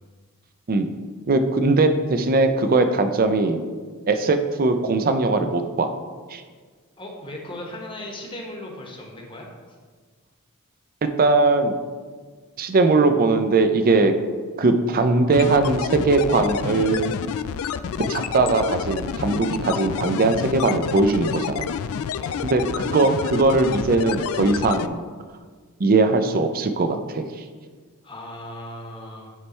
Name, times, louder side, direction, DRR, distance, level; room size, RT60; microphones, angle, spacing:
voice 1, 1.3-3.6 4.1-5.9 6.3-6.4 11.0-11.7 12.6-14.1 14.6-17.1 18.1-21.7 22.4-25.0 25.8-27.2, right 3 dB, 40° right, 8 dB, 0.5 m, -20 dB
voice 2, 7.0-9.5 22.1-22.5 28.0-29.3, left 1 dB, 25° left, 0 dB, 1.0 m, -37 dB
sound 1, 15.3-24.9, left 7 dB, 65° left, 0.3 m, -29 dB
9.7 x 3.4 x 4.3 m, 1.5 s
head